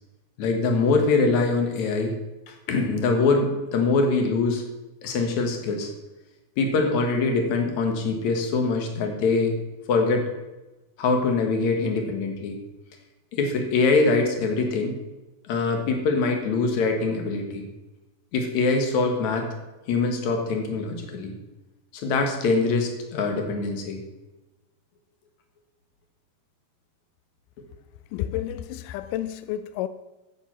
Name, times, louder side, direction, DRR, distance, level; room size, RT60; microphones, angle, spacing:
voice 1, 0.4-2.2 2.5-4.6 5.0-5.9 6.6-9.6 9.9-10.3 11.0-12.6 13.3-15.0 15.5-17.6 18.3-19.5 19.9-21.3 21.9-24.0, left 3 dB, 60° left, 4 dB, 2.6 m, -23 dB
voice 2, 28.1-29.9, left 12 dB, 90° left, 13 dB, 1.8 m, -30 dB
9.8 x 8.5 x 5.8 m, 1.0 s
omnidirectional pair, 4.3 m